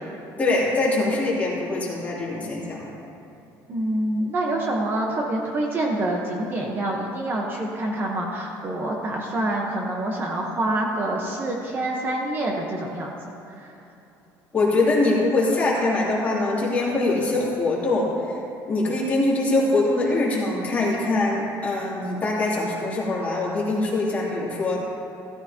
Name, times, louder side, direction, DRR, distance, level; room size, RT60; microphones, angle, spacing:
voice 1, 0.4-2.9 14.5-18.4 18.7-24.8, left 2 dB, 20° left, -6 dB, 2.9 m, -23 dB
voice 2, 3.7-13.1 13.6-13.7, right 1 dB, 30° right, -1 dB, 1.1 m, -26 dB
16.5 x 13.5 x 2.9 m, 2.9 s
cardioid pair, 165°, 8 cm